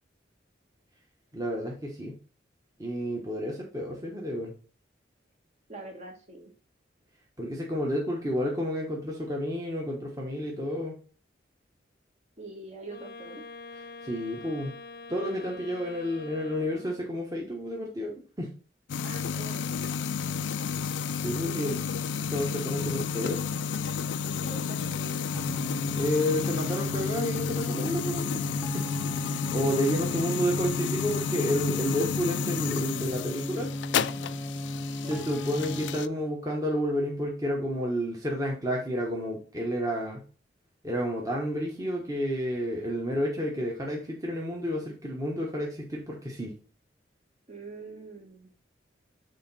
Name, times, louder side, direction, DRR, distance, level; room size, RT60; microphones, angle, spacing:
voice 1, 1.3-2.2 2.8-4.5 7.4-11.0 14.0-14.7 15.1-18.5 21.2-21.8 22.3-23.4 25.9-28.9 29.2-33.7 35.1-40.2 40.8-46.5, equal, 20° right, -2 dB, 1.2 m, -30 dB
voice 2, 5.7-6.5 12.4-13.4 19.0-19.7 21.4-21.8 24.3-25.3 34.9-35.2 47.5-48.5, right 3 dB, 40° right, 2 dB, 1.4 m, -43 dB
Wind instrument woodwind instrument, 12.9-17.2, left 3 dB, 55° left, 0.7 m, -45 dB
sound 1, 18.9-36.1, left 6 dB, 85° left, 0.3 m, -31 dB
sound 2, 25.3-36.0, left 1 dB, 5° left, 0.7 m, -35 dB
6.7 x 3.9 x 4.1 m, 0.39 s
head